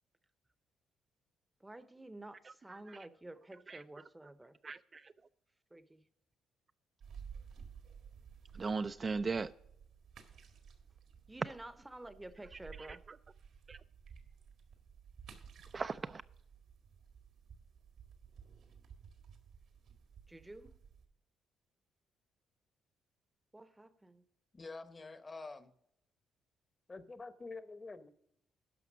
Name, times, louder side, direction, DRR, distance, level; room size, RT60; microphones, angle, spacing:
voice 1, 1.6-4.6 5.7-6.1 11.3-13.0 20.3-20.8 23.5-24.2, right 1 dB, 15° right, 0.7 m, -51 dB
voice 2, 2.4-3.0 3.7-3.8 4.6-5.1 8.5-9.5 12.8-13.2 13.7-13.8 15.7-16.2, right 4 dB, 35° right, 0.3 m, -39 dB
sound 1, 7.0-21.1, right 6 dB, 75° right, 1.7 m, -55 dB
voice 3, 24.5-25.7 26.9-28.1, left 3 dB, 25° left, 0.9 m, -47 dB
11.0 x 5.8 x 6.1 m
cardioid pair, 90°, 0 cm